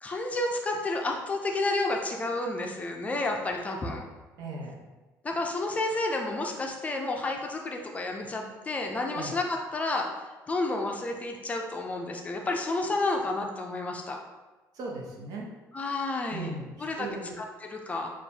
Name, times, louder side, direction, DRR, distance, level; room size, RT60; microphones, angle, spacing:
voice 1, 0.0-4.0 5.2-10.1 10.5-14.2 15.7-16.5 16.8-17.1 17.4-18.1, left 2 dB, 20° left, 2 dB, 0.4 m, -30 dB
voice 2, 4.4-4.8 9.1-9.3 14.7-15.5 16.3-17.3, right 2 dB, 65° right, -2 dB, 1.0 m, -38 dB
6.4 x 2.4 x 2.8 m, 1.2 s
cardioid pair, 135°, 7 cm